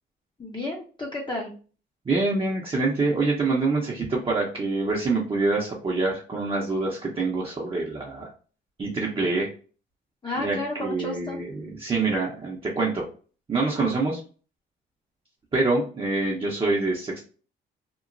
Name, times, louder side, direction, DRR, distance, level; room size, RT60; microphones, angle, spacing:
voice 1, 0.4-1.5 10.2-11.4, left 2 dB, 25° left, -1 dB, 0.7 m, -32 dB
voice 2, 2.1-8.3 8.8-9.5 10.4-13.1 13.5-14.2 15.5-17.2, right 3 dB, 25° right, -4 dB, 0.7 m, -25 dB
2.9 x 2.1 x 2.5 m, 0.39 s
cardioid pair, 90°, 20 cm